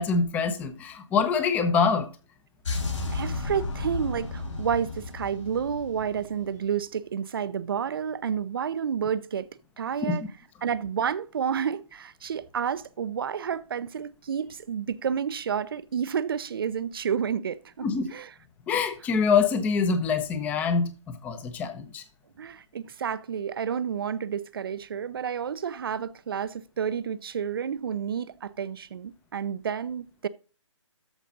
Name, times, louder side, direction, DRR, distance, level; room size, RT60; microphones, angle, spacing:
voice 1, 0.0-2.1 10.0-10.2 17.8-18.1 18.7-22.0, left 5 dB, 10° left, 0.9 m, -25 dB
sound 1, 2.6-6.7, left 3 dB, 70° left, 5.7 m, -33 dB
voice 2, 3.1-9.5 9.8-10.2 10.6-18.3 22.4-30.3, right 7 dB, 45° right, 0.7 m, -30 dB
13.5 x 5.0 x 3.9 m
hypercardioid pair, 155°, 16 cm